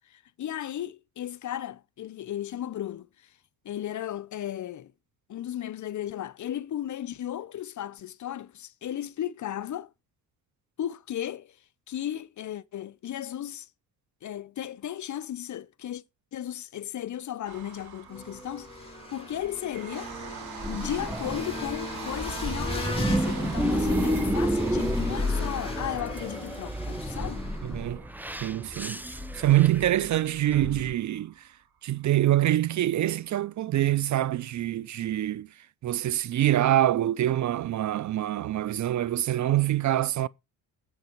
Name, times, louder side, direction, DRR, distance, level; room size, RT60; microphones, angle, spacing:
voice 1, 0.1-3.3 3.6-4.9 5.3-9.9 10.8-11.6 11.9-13.7 14.2-16.0 16.3-20.4 20.7-27.5, left 11 dB, 50° left, 0.6 m, -35 dB
sound 1, 17.4-31.6 32.0-32.1 32.4-32.5, right 8 dB, 70° right, 3.0 m, -45 dB
sound 2, 18.1-27.9, left 2 dB, 15° left, 4.0 m, -39 dB
grainy season cut, 20.6-30.9, equal, 5° right, 0.8 m, -30 dB
voice 2, 27.6-28.0 28.4-29.0 29.3-31.4 31.8-35.5 35.8-40.3, right 13 dB, 50° right, 0.5 m, -25 dB
7.9 x 7.9 x 4.4 m
cardioid pair, 85°, 39 cm